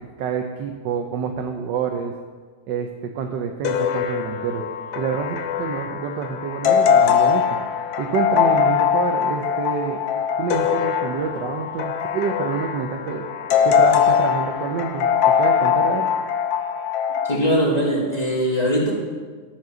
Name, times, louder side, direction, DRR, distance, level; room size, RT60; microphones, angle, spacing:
voice 1, 0.0-2.1 2.7-2.9 3.1-4.6 5.0-7.6 8.0-10.0 10.4-13.3 13.6-16.1, right 6 dB, 85° right, 3 dB, 1.4 m, -27 dB
sound 1, 3.6-17.4, left 7 dB, 70° left, 1.1 m, -21 dB
voice 2, 17.2-18.9, equal, 25° left, -4 dB, 1.8 m, -21 dB
10.5 x 5.2 x 6.8 m, 1.5 s
omnidirectional pair, 1.9 m